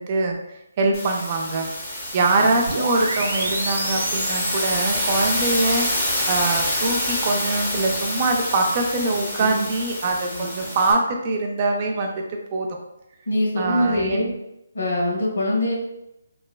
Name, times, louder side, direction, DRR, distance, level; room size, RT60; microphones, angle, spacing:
voice 1, 0.0-1.7 2.1-5.9 6.3-12.8 13.6-14.3, right 2 dB, 30° right, 2 dB, 0.3 m, -23 dB
sound 1, 0.9-10.9, left 1 dB, 10° left, 0.6 m, -27 dB
sound 2, 2.7-6.3, right 2 dB, 85° right, 0.5 m, -30 dB
voice 2, 9.4-9.7 10.3-10.5 13.3-14.3 14.7-15.7, left 1 dB, 85° left, -3 dB, 1.3 m, -23 dB
3.1 x 2.1 x 2.2 m, 0.85 s
hypercardioid pair, 170°, 0 cm